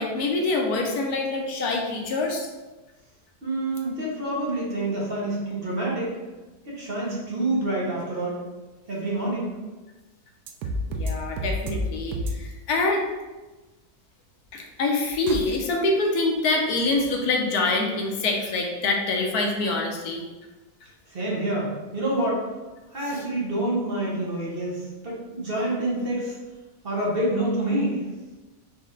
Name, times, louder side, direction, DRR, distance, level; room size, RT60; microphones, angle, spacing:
voice 1, 0.0-2.5 10.9-13.0 14.5-20.2, left 2 dB, 75° left, 1 dB, 1.2 m, -25 dB
voice 2, 3.4-6.2 6.7-8.4 8.9-9.5 21.1-22.4 22.9-26.4 26.8-28.0, right 1 dB, 40° right, -6 dB, 1.2 m, -27 dB
sound 1, 10.5-11.1 11.4-11.8 12.1-12.3 15.3-15.4, right 1 dB, 80° right, 1.1 m, -28 dB
4.2 x 3.2 x 3.8 m, 1.2 s
omnidirectional pair, 1.7 m